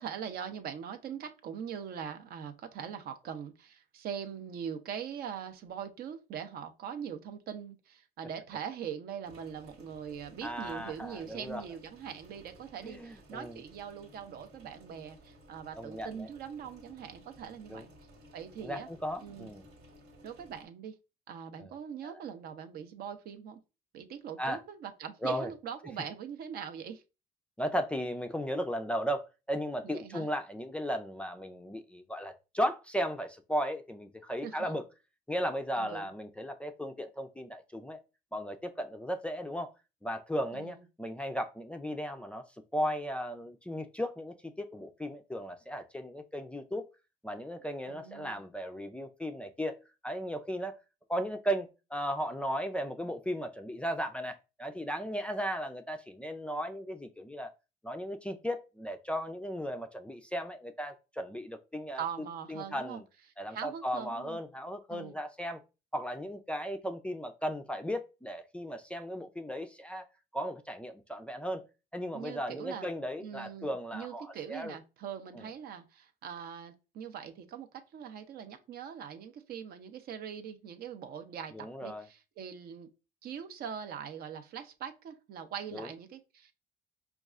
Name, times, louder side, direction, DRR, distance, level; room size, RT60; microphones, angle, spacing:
voice 1, 0.0-17.9 18.3-18.9 19.2-19.5 20.2-20.9 21.3-23.6 23.9-27.0 29.8-30.3 34.4-34.8 35.7-36.1 40.5-40.8 47.9-48.4 62.0-63.0 63.5-64.4 64.9-65.2 72.1-72.9 73.2-82.9 83.2-86.5, right 8 dB, 65° right, 0.6 m, -42 dB
sound 1, 9.2-20.6, equal, 85° right, 1.4 m, -57 dB
voice 2, 10.4-11.6 12.8-13.6 15.8-16.3 17.7-17.8 18.6-19.6 21.6-21.7 22.0-22.2 24.4-24.6 25.2-25.5 27.6-34.8 35.3-38.0 38.3-39.7 40.0-42.4 42.7-46.8 47.2-49.8 50.0-50.8 51.1-57.5 57.8-62.0 62.5-63.0 63.4-65.6 65.9-70.1 70.3-71.6 71.9-74.7 75.3-75.5 81.5-82.0 85.7-85.9, equal, 5° left, 0.3 m, -36 dB
5.2 x 2.3 x 2.4 m
cardioid pair, 110°, 17 cm